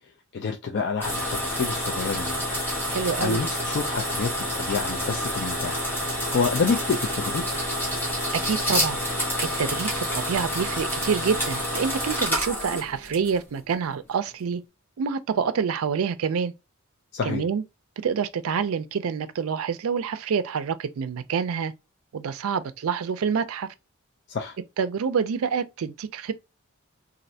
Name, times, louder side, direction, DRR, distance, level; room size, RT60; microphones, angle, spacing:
voice 1, 0.3-2.4 3.2-5.9 6.3-7.5 17.1-17.4 24.3-24.6, left 5 dB, 50° left, 0.4 m, -28 dB
sound 1, 1.0-13.6, equal, 10° left, 1.0 m, -28 dB
voice 2, 2.9-3.4 8.4-9.0 9.6-14.6 15.0-16.5 17.2-17.6 18.0-21.7 22.1-23.7 24.8-26.3, right 6 dB, 70° right, 0.4 m, -27 dB
3.1 x 2.5 x 2.7 m
head